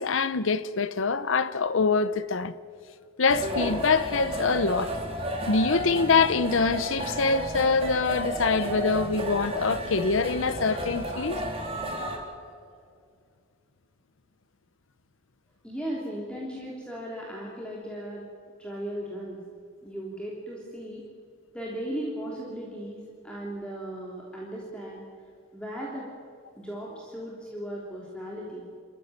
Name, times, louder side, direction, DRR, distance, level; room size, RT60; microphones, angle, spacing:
voice 1, 0.0-2.5 3.2-4.9 5.5-11.4, left 4 dB, 75° left, 0.8 m, -24 dB
sound 1, 3.3-12.2, equal, 30° right, 4.1 m, -32 dB
voice 2, 15.6-18.3 18.6-19.4 19.8-21.0 21.5-25.0 25.5-26.1 26.6-28.7, right 1 dB, 5° left, 3.2 m, -37 dB
27.0 x 14.5 x 9.6 m
head